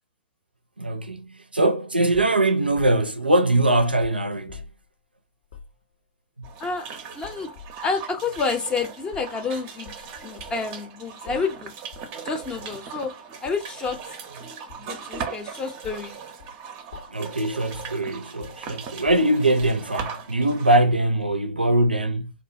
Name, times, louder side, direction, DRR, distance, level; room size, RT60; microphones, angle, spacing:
voice 1, 0.8-4.7 17.1-22.3, right 1 dB, 85° right, 0.4 m, -22 dB
sound 1, 2.1-4.9 5.4-5.8 6.4-6.8 7.2-7.8 8.4-8.5 9.1-9.4 9.8-10.6 11.3-11.6 11.9-12.1 12.4-12.7 13.4-14.1 14.7-15.4 15.8-16.1 16.4-16.6 16.9-17.3 17.7-18.0 18.4-20.1, left 6 dB, 60° left, 0.6 m, -45 dB
sound 2, 6.4-20.8, right 6 dB, 30° right, 0.5 m, -39 dB
voice 2, 7.1-7.5 7.8-9.9 10.2-11.7 12.2-13.1 13.4-14.0 14.8-16.2, left 4 dB, 15° left, 0.5 m, -29 dB
2.4 x 2.1 x 2.5 m
figure-of-eight pair, 110°, 5 cm